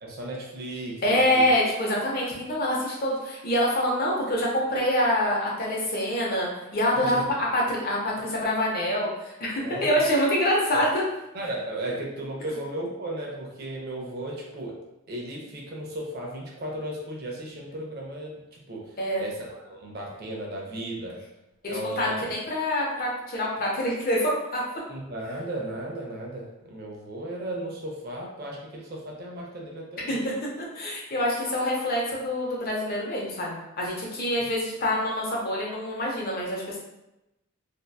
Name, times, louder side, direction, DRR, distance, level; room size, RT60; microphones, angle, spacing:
voice 1, 0.0-1.5 7.0-7.2 9.6-10.0 10.7-10.8 11.3-14.7 15.1-21.2 21.7-22.3 24.9-30.2, right 1 dB, 45° right, -2 dB, 0.4 m, -35 dB
voice 2, 1.0-11.0 19.0-19.2 21.6-24.6 30.1-30.3 30.7-36.8, left 1 dB, 40° left, -3 dB, 0.6 m, -26 dB
2.6 x 2.2 x 2.2 m, 0.94 s
head